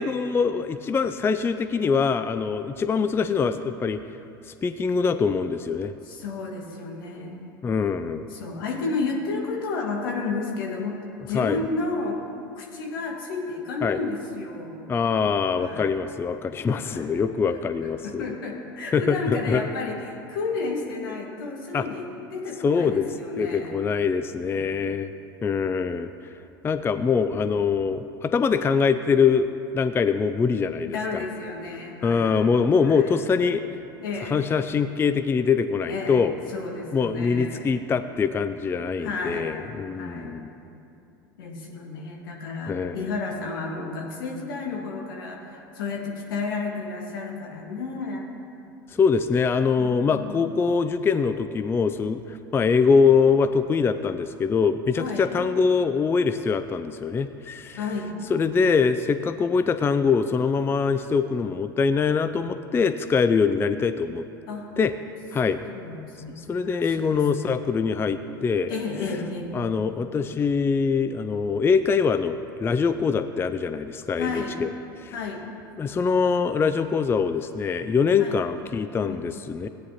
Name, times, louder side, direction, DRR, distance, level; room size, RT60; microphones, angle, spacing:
voice 1, 0.0-4.0 4.5-5.9 7.6-8.3 11.3-11.6 13.8-14.0 14.9-18.2 18.9-19.6 21.7-21.8 22.6-23.1 23.4-25.1 25.4-26.1 26.6-31.2 32.0-33.6 34.3-36.3 36.9-40.5 42.7-43.0 48.9-57.8 58.3-64.2 64.8-64.9 65.3-65.6 66.4-68.7 69.5-74.7 75.0-75.1 75.8-79.7, left 5 dB, 20° left, 11 dB, 0.4 m, -23 dB
voice 2, 6.0-7.6 8.3-11.0 11.3-12.2 12.5-14.9 15.5-16.0 16.7-17.1 18.0-23.8 24.4-24.7 27.2-27.5 30.8-32.5 32.8-33.1 34.0-34.4 35.9-37.8 39.0-40.5 41.4-48.3 49.8-50.4 54.9-55.3 57.7-58.2 64.5-64.7 65.7-67.6 68.7-69.5 74.1-74.6 75.1-75.4 78.2-78.5 79.0-79.2, left 3 dB, 75° left, 0 dB, 1.9 m, -32 dB
17.0 x 9.4 x 2.9 m, 2.7 s
hypercardioid pair, 80°, 12 cm